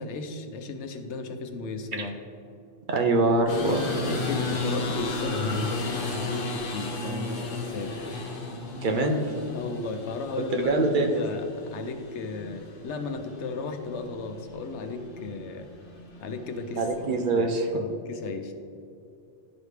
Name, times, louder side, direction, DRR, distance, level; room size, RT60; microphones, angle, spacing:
voice 1, 0.0-2.1 3.7-8.0 9.5-15.7 16.2-18.5, left 4 dB, 90° left, 6 dB, 1.0 m, -36 dB
voice 2, 2.9-3.9 8.8-9.2 10.4-11.3 16.8-17.7, right 2 dB, 55° right, 4 dB, 0.8 m, -24 dB
sound 1, 3.5-17.4, left 2 dB, 55° left, 0.9 m, -34 dB
11.0 x 4.9 x 3.3 m, 2.5 s
omnidirectional pair, 1.1 m